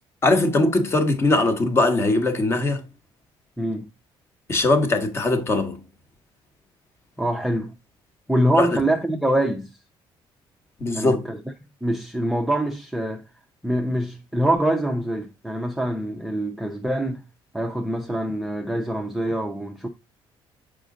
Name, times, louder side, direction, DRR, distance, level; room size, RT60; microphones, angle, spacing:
voice 1, 0.2-2.8 4.5-5.8 8.6-8.7 10.8-11.2, left 2 dB, 25° left, 1.1 m, -20 dB
voice 2, 3.6-3.9 7.2-7.7 8.3-9.7 10.9-11.4 11.8-13.2 13.6-17.2 17.5-19.9, right 1 dB, ahead, 0.5 m, -24 dB
6.4 x 5.0 x 3.7 m
cardioid pair, 150°, 10 cm